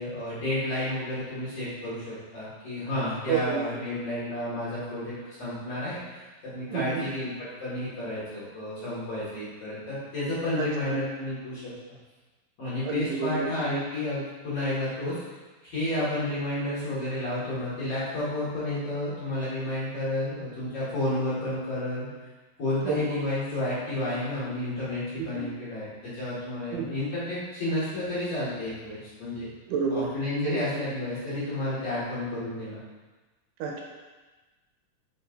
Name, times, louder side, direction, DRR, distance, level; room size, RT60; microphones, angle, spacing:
voice 1, 0.0-11.7 12.6-15.2 15.6-22.1 22.6-29.5 29.9-32.8, left 1 dB, 45° left, -11 dB, 2.5 m, -31 dB
voice 2, 3.3-3.6 6.7-7.1 10.6-11.0 12.8-13.8 22.8-23.2 25.2-25.5 26.7-26.9 29.7-30.1 30.4-30.6 33.6-33.8, right 6 dB, 85° right, 0 dB, 2.8 m, -30 dB
7.7 x 5.6 x 2.6 m, 1.2 s
omnidirectional pair, 4.8 m